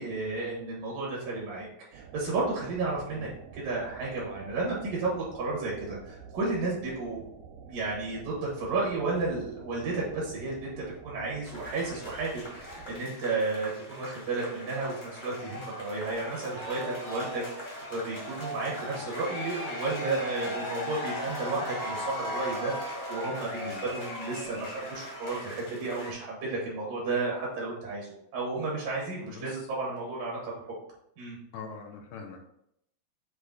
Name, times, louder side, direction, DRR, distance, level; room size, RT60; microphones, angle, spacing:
voice 1, 0.0-7.2 7.7-30.7 31.2-31.4, right 3 dB, 75° right, -4 dB, 3.3 m, -33 dB
sound 1, 1.9-13.0, right 6 dB, 90° right, 1.6 m, -49 dB
sound 2, 11.4-26.1, left 1 dB, 20° left, 1.3 m, -38 dB
voice 2, 29.3-29.7 31.5-32.5, left 5 dB, 80° left, 2 dB, 2.6 m, -43 dB
7.8 x 3.3 x 3.9 m, 0.76 s
omnidirectional pair, 3.9 m